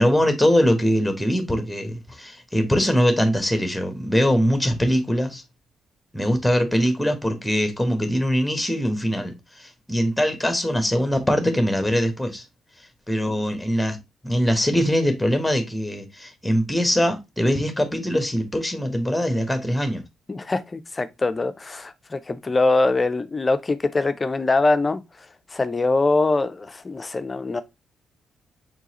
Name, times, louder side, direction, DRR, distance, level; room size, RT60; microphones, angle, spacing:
voice 1, 0.0-5.4 6.1-12.4 13.1-14.0 14.2-20.0, equal, 5° left, 1.3 m, -22 dB
voice 2, 20.3-25.0 25.5-27.6, left 3 dB, 30° left, 0.6 m, -23 dB
4.6 x 4.0 x 2.9 m
figure-of-eight pair, 40°, 0 cm